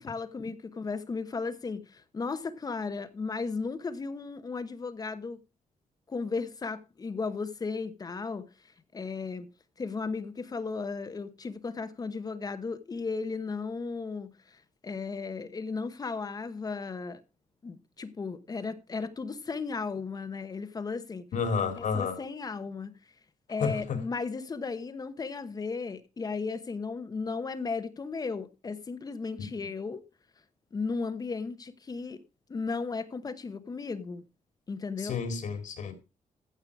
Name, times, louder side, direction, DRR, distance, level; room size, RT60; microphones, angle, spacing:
voice 1, 0.0-5.4 6.1-8.5 8.9-9.5 9.8-17.2 17.6-21.2 21.8-23.0 23.5-30.0 30.7-32.2 32.5-34.2 34.7-35.2, left 4 dB, 30° left, 1.0 m, -35 dB
voice 2, 21.3-22.2 23.6-24.0 29.4-29.5 35.0-35.9, left 5 dB, 70° left, 2.6 m, -31 dB
15.0 x 5.8 x 4.7 m
wide cardioid pair, 155°, 13 cm